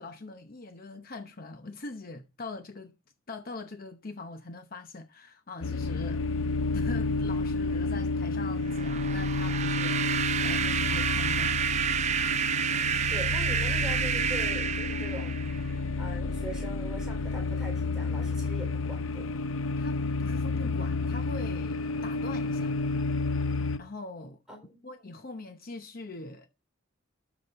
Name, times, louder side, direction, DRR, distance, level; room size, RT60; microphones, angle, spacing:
voice 1, 0.0-3.0 3.3-6.2 6.7-11.6 19.8-22.7 23.8-24.4 24.8-26.5, left 2 dB, 45° left, 0.8 m, -42 dB
sound 1, 5.6-23.8, left 3 dB, 85° left, 0.6 m, -30 dB
sound 2, 8.7-15.7, right 7 dB, 35° right, 0.5 m, -29 dB
voice 2, 13.1-15.3 16.0-19.4 24.5-24.8, equal, 5° right, 4.4 m, -42 dB
12.5 x 5.0 x 4.1 m
head